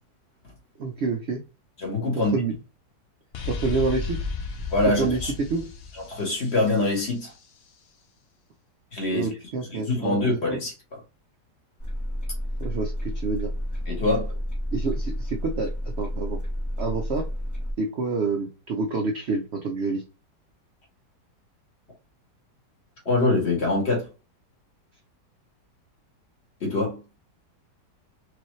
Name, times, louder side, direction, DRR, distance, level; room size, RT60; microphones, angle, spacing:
voice 1, 0.8-1.4 2.1-2.6 3.5-4.2 5.0-5.2 5.5-5.7 9.1-10.2 10.5-10.6 12.6-13.5 14.7-15.7 16.0-16.4 16.8-17.2 17.8-20.0, right 4 dB, 65° right, 0.6 m, -28 dB
voice 2, 1.8-2.3 4.7-5.3 6.1-7.3 8.9-9.3 9.7-10.7 13.9-14.3 23.0-24.1 26.6-27.0, left 2 dB, 40° left, 1.6 m, -24 dB
sound 1, 3.3-7.1, left 4 dB, 70° left, 0.5 m, -33 dB
sound 2, 11.8-17.7, equal, 15° left, 0.7 m, -30 dB
4.7 x 2.7 x 3.1 m
omnidirectional pair, 1.9 m